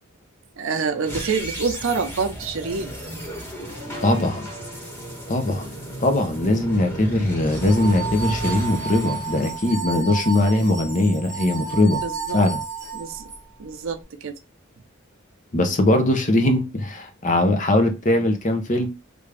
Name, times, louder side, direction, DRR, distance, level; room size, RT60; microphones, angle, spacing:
voice 1, 0.6-2.9 6.4-6.8 12.0-12.4 12.9-13.3 13.6-14.3, right 5 dB, 70° right, 0.6 m, -27 dB
sound 1, 1.0-10.2, right 1 dB, 10° left, 1.4 m, -34 dB
voice 2, 4.0-4.5 5.3-5.7 6.0-12.0 12.3-12.6 15.5-18.9, left 1 dB, 40° left, 0.7 m, -20 dB
sound 2, 7.5-13.4, right 5 dB, 15° right, 1.0 m, -32 dB
3.4 x 2.6 x 3.3 m
head